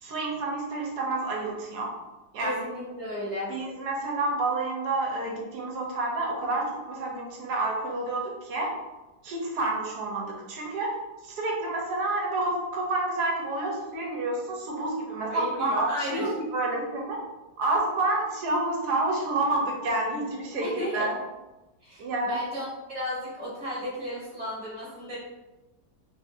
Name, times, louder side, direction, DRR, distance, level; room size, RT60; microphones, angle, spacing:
voice 1, 0.0-1.9 2.3-2.6 3.5-8.7 9.2-10.9 11.2-17.2 17.6-21.2 22.0-22.4, right 2 dB, 70° right, -1 dB, 1.2 m, -29 dB
voice 2, 2.4-3.5 15.3-16.3 20.6-21.1 21.8-25.2, left 1 dB, 15° right, -8 dB, 1.3 m, -34 dB
3.4 x 2.7 x 2.5 m, 1.1 s
omnidirectional pair, 1.9 m